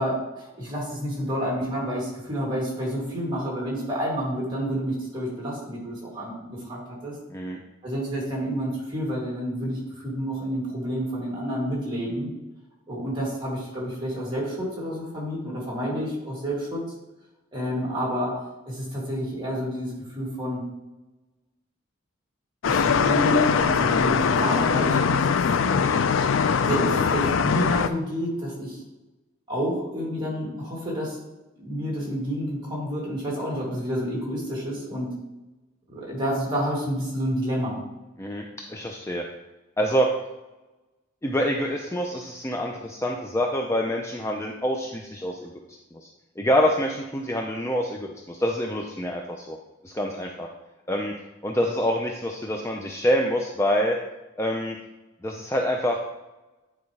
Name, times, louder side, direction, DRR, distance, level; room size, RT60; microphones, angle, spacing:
voice 1, 0.0-7.1 7.8-12.3 12.9-16.8 17.5-18.4 18.7-20.7 22.6-25.3 25.6-25.8 26.6-28.8 29.5-31.2 31.6-35.1 35.9-37.8, equal, 20° right, -4 dB, 2.4 m, -29 dB
sound 1, 22.6-27.9, left 6 dB, 75° left, 0.4 m, -22 dB
voice 2, 38.2-39.3 39.8-40.1 41.2-45.6 45.9-46.1 46.4-49.6 49.8-50.5 50.9-51.1 51.4-54.0 54.4-54.8 55.2-56.0, equal, 15° left, 1 dB, 0.4 m, -26 dB
9.6 x 4.5 x 3.2 m, 1.1 s
head